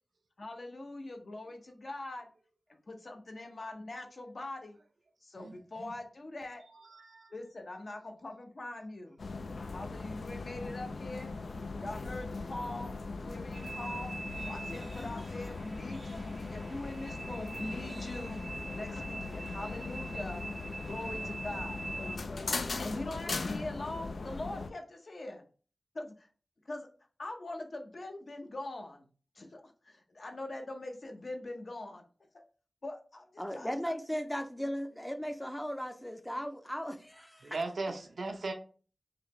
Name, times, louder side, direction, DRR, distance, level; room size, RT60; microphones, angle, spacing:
voice 1, 0.4-2.3 2.9-4.8 5.2-6.6 7.3-9.2 9.7-11.3 11.8-14.2 14.5-20.4 20.8-21.8 22.8-25.4 25.9-26.3 26.7-26.9 27.2-29.1 29.4-32.0 32.3-32.4 32.8-33.7, left 2 dB, 60° left, 4 dB, 0.8 m, -42 dB
sound 1, 9.2-24.7, left 3 dB, 85° left, 0.4 m, -39 dB
sound 2, 13.5-22.2, right 3 dB, 50° right, 0.4 m, -44 dB
voice 2, 33.4-37.6, equal, 10° left, 7 dB, 0.5 m, -37 dB
voice 3, 37.4-38.5, right 3 dB, 85° right, 4 dB, 0.7 m, -37 dB
3.9 x 2.8 x 3.1 m, 0.39 s
wide cardioid pair, 75°, 0 cm